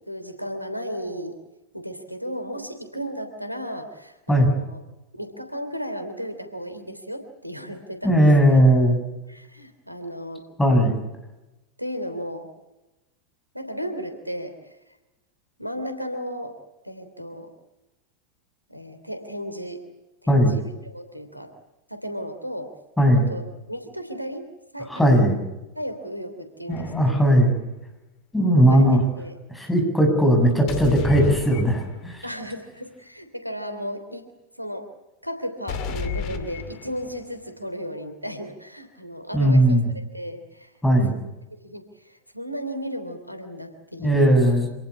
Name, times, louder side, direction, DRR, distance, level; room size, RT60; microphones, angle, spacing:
voice 1, 0.0-1.4 1.7-4.8 5.1-8.6 9.3-10.4 11.8-12.5 13.5-14.8 15.6-16.6 16.8-17.5 18.7-19.8 20.2-21.5 21.9-22.7 23.1-25.3 25.7-27.2 28.5-29.4 32.2-34.3 34.6-34.9 35.2-39.8 40.1-40.7 41.2-41.3 41.6-44.4, equal, 90° right, 8 dB, 3.2 m, -35 dB
voice 2, 8.0-9.0 10.6-11.0 20.3-20.5 23.0-23.3 24.9-25.4 26.7-27.6 28.3-29.0 29.5-32.3 39.3-39.9 40.8-41.2 44.0-44.7, equal, 5° left, 4 dB, 7.0 m, -18 dB
sound 1, 26.7-27.4 30.7-32.2 35.7-37.3, left 6 dB, 40° left, 2.6 m, -32 dB
27.0 x 18.0 x 8.5 m, 1.0 s
figure-of-eight pair, 90°, 0 cm